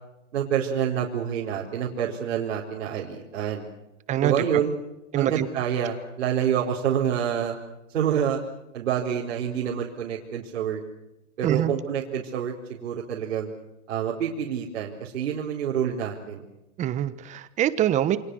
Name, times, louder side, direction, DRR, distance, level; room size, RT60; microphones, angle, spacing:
voice 1, 0.3-3.7 4.2-4.7 5.1-7.6 7.9-8.4 8.7-10.8 11.4-13.5 13.9-16.4, right 8 dB, 75° right, -4 dB, 4.6 m, -27 dB
voice 2, 4.1-4.6 5.1-5.5 11.4-11.7 16.8-18.2, right 11 dB, 20° right, 13 dB, 1.2 m, -24 dB
29.0 x 25.0 x 6.5 m, 0.92 s
hypercardioid pair, 150°, 38 cm